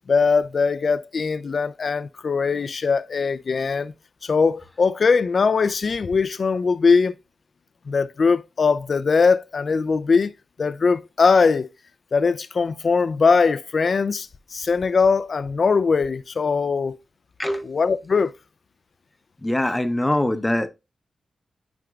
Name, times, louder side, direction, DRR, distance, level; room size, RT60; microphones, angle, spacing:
voice 1, 0.1-3.9 4.2-7.1 7.9-10.3 10.6-11.7 12.1-17.0 17.6-18.3, left 5 dB, 45° left, 0.3 m, -21 dB
voice 2, 17.4-17.7 19.4-20.7, left 1 dB, 10° left, 0.7 m, -23 dB
9.1 x 5.0 x 2.3 m
wide cardioid pair, 145°, 0 cm